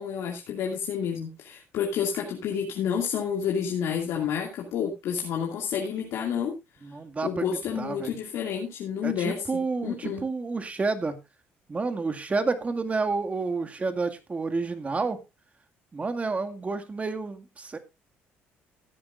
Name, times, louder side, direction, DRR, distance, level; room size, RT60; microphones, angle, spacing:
voice 1, 0.0-6.5 7.2-9.4 9.8-10.2, left 7 dB, 70° left, 0 dB, 2.5 m, -29 dB
voice 2, 6.8-8.1 9.0-11.2 11.7-15.2 15.9-17.8, right 4 dB, 30° right, 8 dB, 2.1 m, -30 dB
16.5 x 9.8 x 2.6 m, 0.24 s
supercardioid pair, 75°, 5 cm